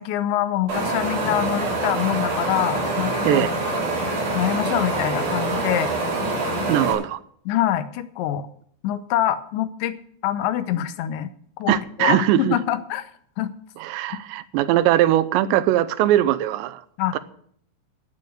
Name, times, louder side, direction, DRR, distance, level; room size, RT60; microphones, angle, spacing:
voice 1, 0.0-3.5 4.3-5.9 7.5-8.4 8.8-10.0 10.2-11.3 11.6-13.1 13.4-13.5 17.0-17.2, left 12 dB, 80° left, 3.2 m, -25 dB
Wind, 0.7-6.9, right 2 dB, 45° right, 4.8 m, -25 dB
voice 2, 6.7-7.2 11.7-12.6 13.8-16.8 17.1-17.2, right 13 dB, 80° right, 2.8 m, -20 dB
13.5 x 9.0 x 6.4 m
omnidirectional pair, 5.2 m